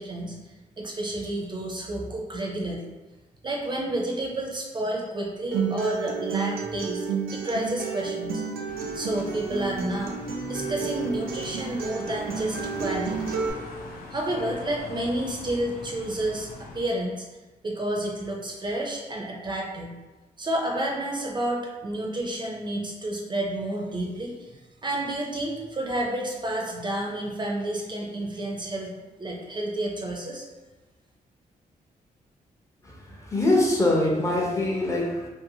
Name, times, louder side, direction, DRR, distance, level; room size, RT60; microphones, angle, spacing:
voice 1, 0.0-2.8 3.4-7.1 7.3-8.4 8.9-10.2 10.5-13.3 14.1-16.5 16.7-17.3 17.6-20.0 20.4-24.5 24.8-30.5, right 1 dB, 30° right, -1 dB, 0.5 m, -30 dB
Acoustic guitar, 5.5-13.5, right 5 dB, 90° right, 0.5 m, -31 dB
sound 1, 8.7-16.8, left 3 dB, 80° left, 0.5 m, -42 dB
voice 2, 32.8-35.3, left 1 dB, 20° left, -2 dB, 0.6 m, -24 dB
2.6 x 2.5 x 2.7 m, 1.2 s
cardioid pair, 100°, 15 cm